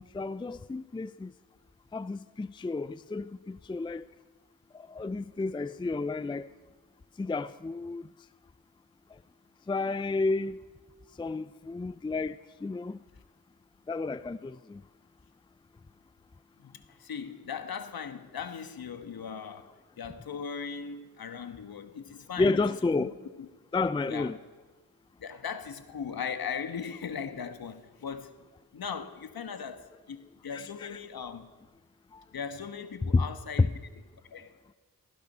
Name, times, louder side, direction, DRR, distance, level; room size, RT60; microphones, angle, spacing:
voice 1, 0.0-1.3 1.9-4.0 4.7-6.5 7.2-8.1 9.1-9.2 9.7-10.6 11.2-13.0 13.9-14.8 22.4-23.2 23.7-24.4 30.5-31.0 32.1-32.2 33.1-33.2 33.6-33.7, left 3 dB, 10° left, 0.4 m, -31 dB
voice 2, 16.6-19.7 20.0-22.6 23.0-23.1 24.1-24.3 25.2-28.4 28.7-30.2 30.4-31.5 32.3-33.7 34.3-34.6, left 6 dB, 60° left, 1.4 m, -38 dB
16.5 x 15.0 x 5.6 m
cardioid pair, 50°, 40 cm